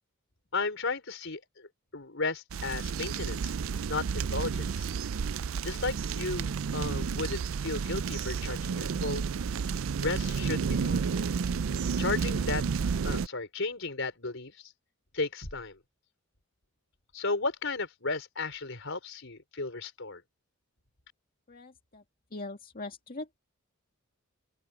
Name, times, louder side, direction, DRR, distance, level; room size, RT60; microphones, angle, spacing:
voice 1, 0.5-3.5 3.9-4.9 5.6-9.3 10.0-11.2 12.0-12.6 13.0-14.7 15.1-15.8 17.1-20.2, left 3 dB, 65° left, 5.0 m, -34 dB
sound 1, 2.5-13.3, right 6 dB, 70° right, 0.4 m, -31 dB
voice 2, 21.5-22.0 22.3-23.4, left 2 dB, 45° left, 2.1 m, -41 dB
open air
head